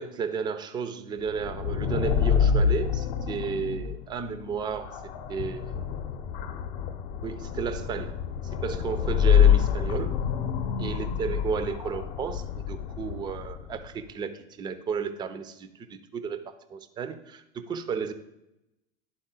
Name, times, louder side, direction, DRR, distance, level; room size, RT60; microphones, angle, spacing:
voice 1, 0.0-5.0 5.3-5.8 7.2-8.2 8.5-10.2 10.8-18.1, right 6 dB, 15° right, 10 dB, 0.4 m, -33 dB
sound 1, 1.3-13.9, left 8 dB, 55° left, 0.8 m, -26 dB
11.0 x 3.8 x 3.7 m, 0.88 s
figure-of-eight pair, 85°, 34 cm